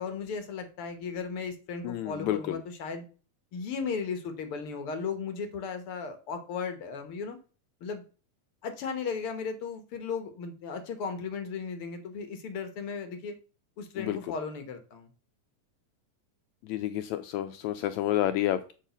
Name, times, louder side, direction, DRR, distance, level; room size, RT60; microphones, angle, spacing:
voice 1, 0.0-3.0 3.5-7.4 7.8-8.0 8.6-13.4 13.8-15.1, left 5 dB, 60° left, 8 dB, 1.5 m, -36 dB
voice 2, 1.8-2.6 14.0-14.2 16.6-18.7, left 13 dB, 80° left, 10 dB, 1.7 m, -30 dB
7.4 x 4.9 x 6.9 m, 0.37 s
omnidirectional pair, 3.7 m